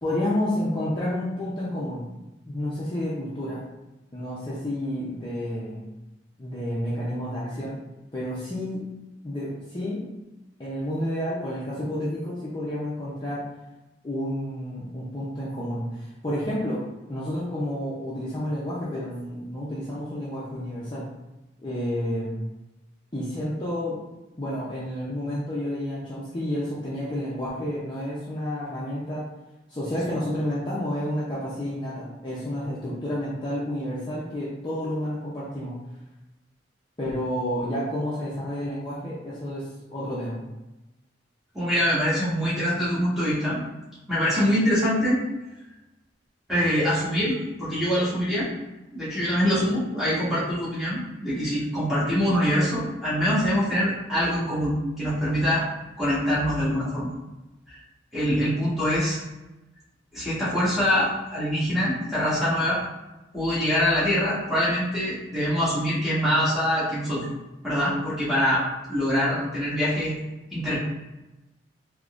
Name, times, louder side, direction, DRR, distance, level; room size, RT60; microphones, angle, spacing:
voice 1, 0.0-2.0 2.4-3.6 4.1-5.8 6.4-7.8 8.1-8.9 9.2-10.1 10.6-13.5 14.0-21.1 21.6-22.5 23.1-24.0 24.4-29.2 29.7-35.7 37.0-40.4, left 1 dB, 25° left, -8 dB, 0.6 m, -30 dB
voice 2, 41.5-43.6 44.1-45.2 46.5-48.5 48.9-55.7 56.0-57.1 57.7-57.8 58.1-59.2 60.1-62.8 63.3-67.3 67.6-68.6 68.9-70.1 70.5-70.8, equal, ahead, -10 dB, 1.3 m, -24 dB
3.7 x 2.9 x 2.4 m, 1.0 s
head